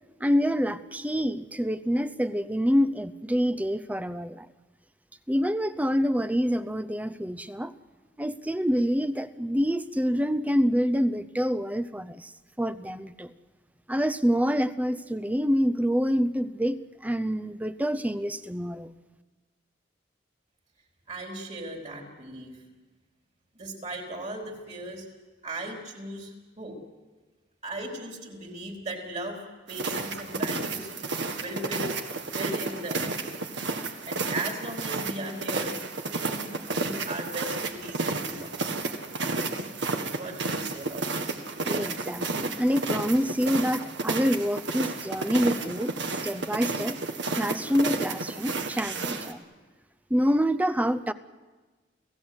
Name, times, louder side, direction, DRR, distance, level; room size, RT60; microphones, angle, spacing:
voice 1, 0.2-4.5 5.3-7.7 8.2-12.3 12.6-13.3 13.9-18.9 41.7-45.9 46.2-47.0 47.3-49.4 50.1-51.1, equal, 10° right, 13 dB, 0.7 m, -26 dB
voice 2, 21.1-22.5 23.5-25.1 25.4-26.8 27.6-29.4 29.7-30.9 31.3-31.9 32.2-33.2 34.0-35.7 36.1-38.8 40.2-41.6, right 1 dB, 40° right, 1 dB, 4.4 m, -37 dB
sound 1, 29.7-49.3, right 3 dB, 70° right, 1.8 m, -32 dB
30.0 x 16.5 x 8.0 m, 1.3 s
head